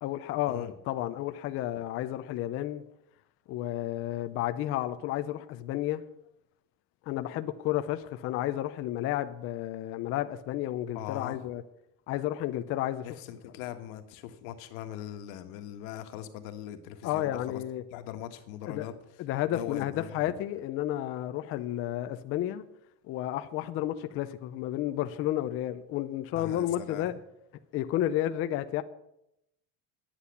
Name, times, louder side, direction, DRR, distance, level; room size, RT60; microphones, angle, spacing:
voice 1, 0.0-2.8 3.5-6.0 7.1-11.6 12.1-13.1 17.0-17.8 18.7-18.9 19.2-22.6 23.0-27.2 27.7-28.8, left 13 dB, 35° left, 0.4 m, -31 dB
voice 2, 10.9-11.5 13.0-17.6 17.9-18.9 19.4-20.4 26.3-27.1, left 11 dB, 85° left, 1.6 m, -41 dB
9.8 x 8.4 x 8.2 m
cardioid pair, 175°, 40 cm